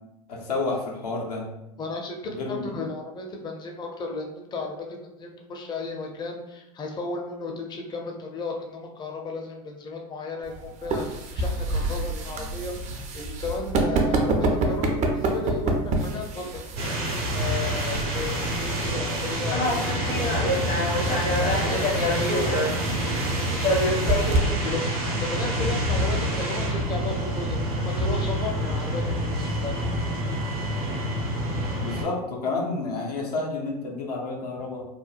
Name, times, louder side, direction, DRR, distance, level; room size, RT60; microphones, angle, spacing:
voice 1, 0.3-1.5 2.4-2.7 31.8-34.8, left 3 dB, 85° left, -1 dB, 0.6 m, -30 dB
voice 2, 1.8-11.1 11.3-12.7 13.1-20.9 21.4-22.5 22.8-23.9 24.2-29.9, left 3 dB, 20° left, 1 dB, 0.5 m, -34 dB
sound 1, 10.4-24.4, right 2 dB, 35° right, 0.5 m, -29 dB
sound 2, 16.8-32.0, equal, 70° right, 0.8 m, -28 dB
sound 3, 19.5-24.5, left 1 dB, 65° left, 0.9 m, -26 dB
2.8 x 2.1 x 2.4 m, 0.93 s
hypercardioid pair, 85°, 20 cm